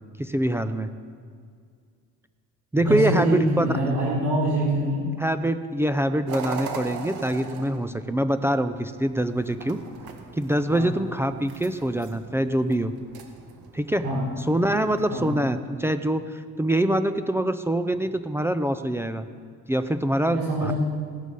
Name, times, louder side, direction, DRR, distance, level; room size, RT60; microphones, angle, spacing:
voice 1, 0.2-0.9 2.7-3.7 5.2-9.8 10.4-12.9 13.7-14.0 14.5-19.3 19.7-20.7, right 1 dB, 10° right, 8 dB, 0.3 m, -24 dB
voice 2, 2.8-5.0 10.7-10.9 14.0-14.2 15.1-15.3 20.3-20.7, right 1 dB, 55° right, -7 dB, 4.8 m, -25 dB
sound 1, 6.3-15.5, right 6 dB, 85° right, 1.9 m, -41 dB
16.5 x 12.5 x 5.4 m, 2.1 s
cardioid pair, 175°, 35 cm